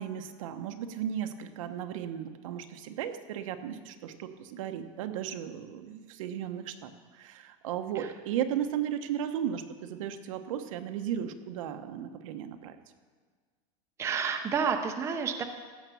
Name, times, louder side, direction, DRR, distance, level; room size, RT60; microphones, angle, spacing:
voice 1, 0.0-12.8, right 9 dB, 75° right, 7 dB, 0.9 m, -35 dB
voice 2, 14.0-15.4, right 6 dB, 15° right, 4 dB, 0.6 m, -30 dB
15.5 x 5.8 x 6.9 m, 1.5 s
supercardioid pair, 160°, 17 cm